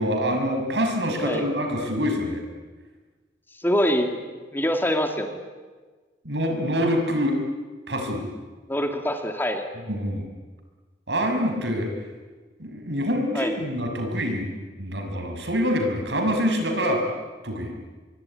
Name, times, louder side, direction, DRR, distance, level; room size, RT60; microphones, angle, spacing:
voice 1, 0.0-2.4 6.2-7.4 7.9-8.2 9.9-10.3 11.1-11.9 12.6-14.5 14.8-17.0 17.4-17.7, equal, 75° right, 4 dB, 5.9 m, -25 dB
voice 2, 3.5-5.3 8.7-9.6 13.3-13.5, equal, 10° left, 5 dB, 2.4 m, -25 dB
25.0 x 22.5 x 9.9 m, 1.3 s
head